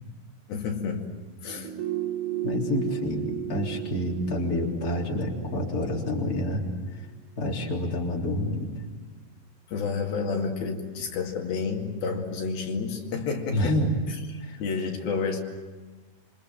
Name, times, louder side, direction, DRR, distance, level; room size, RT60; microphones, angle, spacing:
voice 1, 0.5-1.1 1.4-1.7 9.7-13.7 14.1-15.4, left 5 dB, 75° left, 1 dB, 4.2 m, -30 dB
sound 1, 1.4-6.6 6.9-7.0, right 12 dB, 60° right, 3.1 m, -35 dB
voice 2, 2.4-6.6 7.4-8.7 13.5-14.0 14.5-14.6, left 1 dB, 25° left, -1 dB, 3.6 m, -28 dB
27.5 x 25.0 x 7.7 m, 1.3 s
omnidirectional pair, 4.3 m